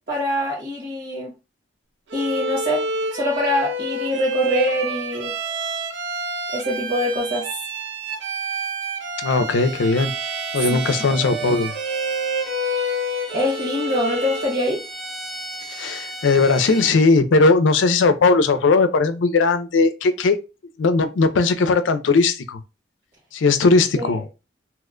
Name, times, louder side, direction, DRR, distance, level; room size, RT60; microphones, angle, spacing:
voice 1, 0.0-1.3 2.1-2.8 3.1-5.3 6.5-7.5 10.7-10.8 13.3-14.8 24.0-24.2, left 1 dB, 55° right, 1.4 m, -24 dB
Bowed string instrument, 2.1-14.6, right 2 dB, 75° right, 0.5 m, -28 dB
voice 2, 9.2-10.1 10.5-11.7 15.7-20.4 20.8-22.6 23.3-24.2, left 3 dB, 85° left, 0.5 m, -18 dB
Bowed string instrument 2, 9.6-17.0, right 1 dB, ahead, 0.4 m, -36 dB
2.9 x 2.1 x 3.6 m
head